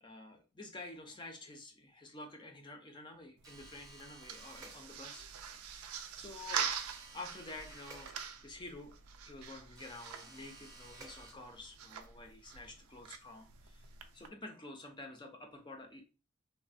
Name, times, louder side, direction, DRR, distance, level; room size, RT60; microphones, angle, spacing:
voice 1, 0.0-5.3 5.9-8.1 8.4-8.9 9.2-16.0, left 2 dB, 20° left, 3 dB, 0.4 m, -50 dB
sound 1, 3.4-5.3 6.8-8.7 9.7-11.8, right 3 dB, 15° right, 0.6 m, -55 dB
sound 2, 3.4-14.3, right 7 dB, 85° right, 0.4 m, -44 dB
3.1 x 2.1 x 2.5 m, 0.33 s
head